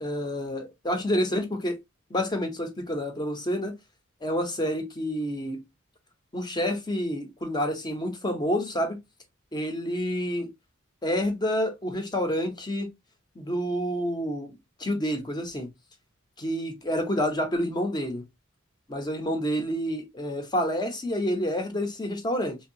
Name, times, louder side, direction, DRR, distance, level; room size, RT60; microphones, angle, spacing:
voice 1, 0.0-1.8 2.1-3.7 4.2-5.6 6.3-9.0 9.5-10.5 11.0-12.9 13.4-14.5 14.8-15.7 16.4-18.2 18.9-22.6, equal, 20° left, 0.6 m, -28 dB
2.6 x 2.1 x 2.5 m
head